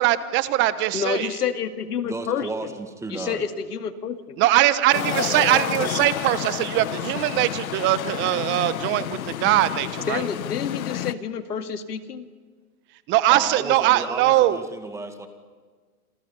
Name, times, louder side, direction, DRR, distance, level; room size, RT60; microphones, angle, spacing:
voice 1, 0.0-1.3 4.4-10.2 13.1-14.6, right 15 dB, 25° right, 14 dB, 1.1 m, -21 dB
voice 2, 0.9-2.7 3.1-4.4 10.1-12.3, left 7 dB, 85° left, 7 dB, 2.3 m, -29 dB
voice 3, 2.0-3.4 13.3-15.3, right 3 dB, 5° right, 6 dB, 2.0 m, -33 dB
sound 1, 4.9-11.1, left 12 dB, 65° left, 1.1 m, -30 dB
28.0 x 27.5 x 5.6 m, 1.5 s
hypercardioid pair, 140°, 45 cm